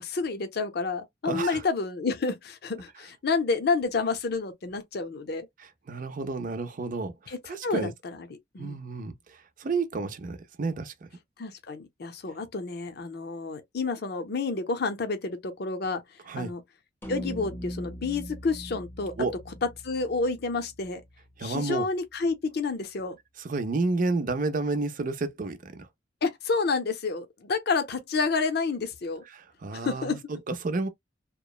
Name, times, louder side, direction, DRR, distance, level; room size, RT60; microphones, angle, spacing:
voice 1, 0.0-5.5 7.3-7.4 7.6-8.8 11.4-16.0 16.4-16.6 17.1-19.1 19.6-21.0 21.4-23.2 26.2-29.2 29.7-30.2, left 4 dB, 60° left, 0.6 m, -29 dB
voice 2, 1.2-1.6 5.6-7.9 8.6-10.9 16.3-16.5 19.2-19.4 21.4-21.9 23.4-25.9 29.3-30.9, right 3 dB, 45° right, 0.5 m, -31 dB
sound 1, 17.0-21.5, equal, 10° left, 0.5 m, -41 dB
2.9 x 2.0 x 2.2 m
head